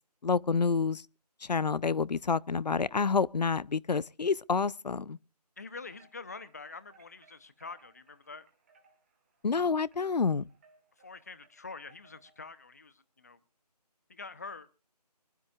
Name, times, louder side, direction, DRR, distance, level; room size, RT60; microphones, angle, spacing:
voice 1, 0.2-1.0 1.5-5.2 9.4-10.4, left 5 dB, 75° left, 0.6 m, -28 dB
voice 2, 5.6-8.5 11.0-13.4 14.1-14.7, left 4 dB, 25° left, 0.7 m, -46 dB
sound 1, 5.9-12.5, right 4 dB, 20° right, 2.0 m, -65 dB
24.5 x 12.0 x 2.4 m
figure-of-eight pair, 170°, 21 cm